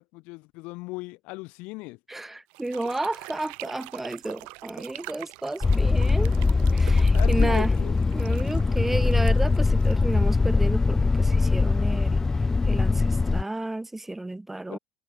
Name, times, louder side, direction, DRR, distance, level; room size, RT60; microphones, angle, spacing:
voice 1, 0.0-2.0 6.9-8.0 14.7-14.8, left 24 dB, 65° left, 0.7 m, -37 dB
voice 2, 2.1-6.3 6.7-7.7 8.1-12.2 12.6-14.8, right 2 dB, 10° right, 0.9 m, -32 dB
sound 1, 2.5-10.5, right 32 dB, 70° right, 1.7 m, -44 dB
sound 2, 5.6-13.4, left 4 dB, 20° left, 0.6 m, -21 dB
hypercardioid pair, 70°, 2 cm